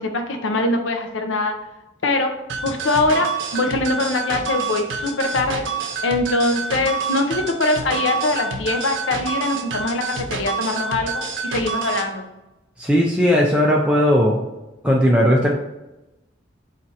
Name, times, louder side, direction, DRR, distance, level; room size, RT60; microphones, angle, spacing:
voice 1, 0.0-1.6 2.0-2.3 2.6-5.6 6.0-12.3, left 2 dB, 80° left, 5 dB, 0.6 m, -22 dB
sound 1, 2.5-12.1, right 5 dB, 75° right, 0.6 m, -28 dB
voice 2, 12.8-14.4 14.8-15.5, equal, 5° right, -2 dB, 0.4 m, -17 dB
4.3 x 2.5 x 4.0 m, 0.98 s
head